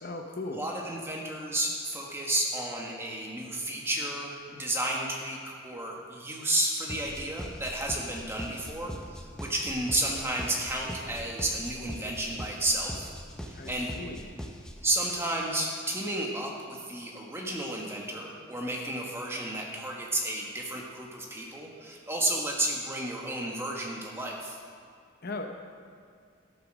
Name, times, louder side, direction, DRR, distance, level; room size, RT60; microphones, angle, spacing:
voice 1, 0.0-0.6 13.6-14.3 25.2-25.5, left 2 dB, 50° left, 4 dB, 0.9 m, -37 dB
voice 2, 0.5-13.1 13.5-13.9 14.8-24.6, right 1 dB, 10° right, -1 dB, 1.5 m, -32 dB
sound 1, 6.9-14.9, equal, 5° left, 0.8 m, -41 dB
13.0 x 8.3 x 6.3 m, 2.2 s
head